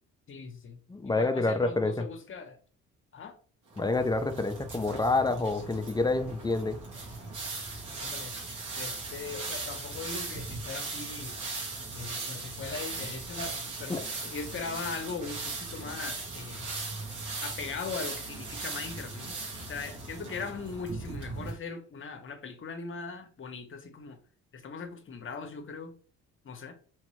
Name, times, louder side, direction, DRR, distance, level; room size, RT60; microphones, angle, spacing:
voice 1, 0.3-0.8 1.0-2.6 3.1-3.4 8.0-8.3 8.8-11.4 11.9-16.6 17.4-19.4 19.6-24.2 24.5-26.0 26.4-26.8, left 5 dB, 45° left, 0.8 m, -40 dB
voice 2, 0.9-2.1 3.8-6.8 13.9-14.0, left 3 dB, 15° left, 0.5 m, -28 dB
sound 1, 3.7-21.5, right 3 dB, 80° right, 1.7 m, -38 dB
3.5 x 3.2 x 3.1 m
cardioid pair, 90°, 30 cm